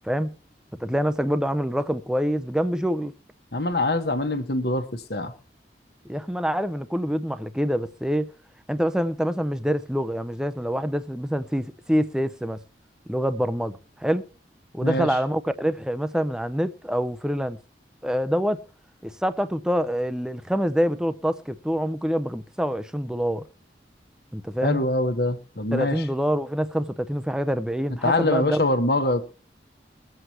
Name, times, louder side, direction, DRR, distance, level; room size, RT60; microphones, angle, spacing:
voice 1, 0.0-0.3 0.8-3.1 6.1-8.3 8.7-12.6 13.1-14.3 14.7-17.6 18.0-18.6 19.0-23.4 24.3-24.8 25.7-28.6, equal, 5° right, 0.6 m, -26 dB
voice 2, 3.5-5.3 14.8-15.1 24.6-26.0 28.0-29.2, left 2 dB, 65° left, 1.4 m, -24 dB
22.5 x 8.0 x 3.0 m
head